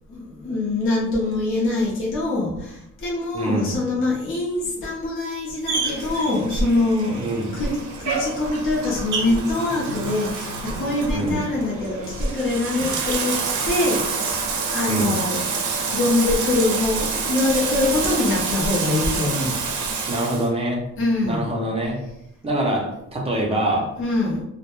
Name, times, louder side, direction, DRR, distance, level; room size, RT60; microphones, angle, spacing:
voice 1, 0.1-13.4 13.6-14.0 14.3-15.4 15.8-19.6 21.0-21.4 24.0-24.4, left 2 dB, 45° left, -5 dB, 0.6 m, -24 dB
voice 2, 3.3-3.8 7.2-7.6 11.1-11.5 14.9-15.2 20.1-20.8 21.2-22.0 22.4-23.9, right 1 dB, 20° right, -1 dB, 0.5 m, -24 dB
Bathtub (filling or washing), 5.6-20.5, right 4 dB, 85° right, 0.5 m, -27 dB
2.1 x 2.1 x 2.9 m, 0.81 s
cardioid pair, 150°, 30 cm